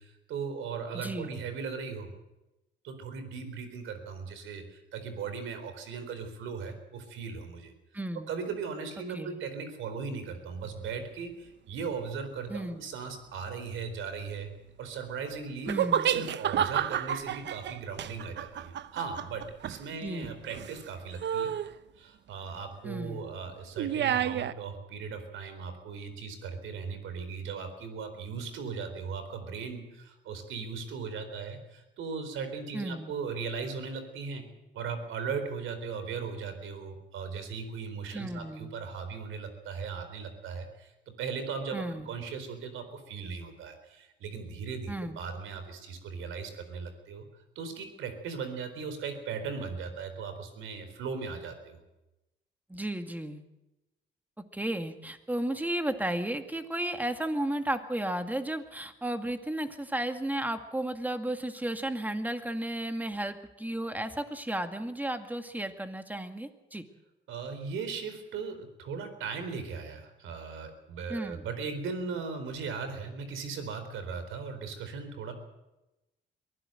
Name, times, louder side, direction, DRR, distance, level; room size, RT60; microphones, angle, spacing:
voice 1, 0.0-2.1 2.8-7.7 8.3-14.5 14.8-15.7 16.0-21.5 22.0-34.5 34.7-40.9 41.2-47.3 47.6-51.8 67.3-75.3, right 5 dB, 85° right, 9 dB, 4.1 m, -38 dB
voice 2, 0.9-1.4 7.9-8.3 9.1-9.4 12.5-12.8 15.7-16.1 20.0-20.4 22.8-23.2 32.7-33.1 38.1-38.7 41.7-42.1 44.9-45.2 52.7-53.4 54.5-66.8 71.1-71.5, right 1 dB, 10° right, 7 dB, 2.1 m, -34 dB
sound 1, 15.7-20.8 21.2-21.7 23.8-24.5, right 10 dB, 65° right, 0.9 m, -30 dB
23.0 x 15.5 x 7.8 m, 0.98 s
cardioid pair, 90°, 20 cm